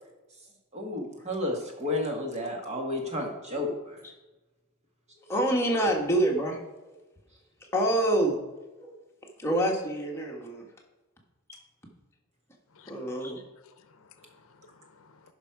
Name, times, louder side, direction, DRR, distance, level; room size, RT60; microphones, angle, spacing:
voice 1, 0.7-3.9, left 1 dB, 30° right, 0 dB, 1.8 m, -32 dB
voice 2, 5.3-6.6 7.7-8.4 8.8-8.9 9.4-10.6 12.9-13.4, right 1 dB, 10° left, -1 dB, 1.5 m, -26 dB
voice 3, 12.7-13.3 13.6-15.3, left 5 dB, 65° left, 9 dB, 0.7 m, -57 dB
11.0 x 5.5 x 4.7 m, 1.1 s
head